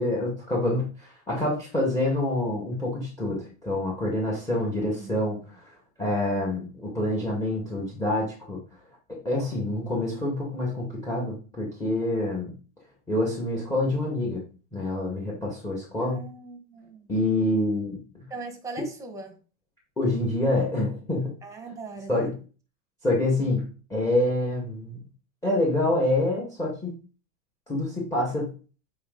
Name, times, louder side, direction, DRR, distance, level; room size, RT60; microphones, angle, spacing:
voice 1, 0.0-5.7 6.0-8.6 9.1-12.5 13.1-14.4 14.7-16.2 17.1-18.2 20.0-21.4 22.1-22.3 23.0-25.0 25.4-26.9 27.7-28.5, left 1 dB, 10° left, 1.9 m, -27 dB
voice 2, 4.6-5.1 16.0-17.1 18.3-19.4 21.4-22.3, right 3 dB, 10° right, 1.6 m, -40 dB
8.5 x 4.8 x 4.0 m
supercardioid pair, 150°, 35 cm